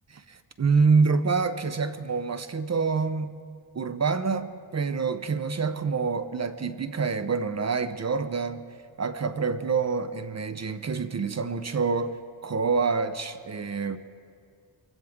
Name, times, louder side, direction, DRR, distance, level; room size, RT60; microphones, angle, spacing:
voice 1, 0.3-3.3 3.7-8.6 9.0-12.2 12.4-14.0, right 5 dB, 35° right, 11 dB, 0.6 m, -26 dB
23.5 x 16.0 x 3.6 m, 2.1 s
wide cardioid pair, 100°, 48 cm